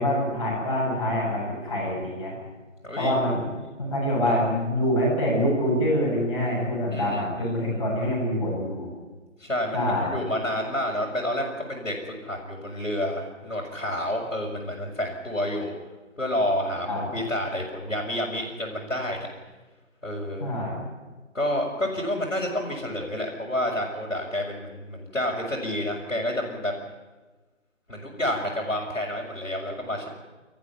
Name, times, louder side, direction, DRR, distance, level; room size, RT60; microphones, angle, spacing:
voice 1, 0.0-2.4 3.0-3.5 3.8-8.9 9.7-10.2 16.9-17.2 20.4-20.9, equal, 25° left, -5 dB, 7.6 m, -25 dB
voice 2, 2.8-3.2 6.9-7.5 9.4-15.7 16.2-19.3 20.0-20.5 21.3-26.7 27.9-30.1, left 1 dB, 80° left, -6 dB, 5.5 m, -29 dB
25.5 x 14.0 x 9.5 m, 1.2 s
figure-of-eight pair, 165°, 39 cm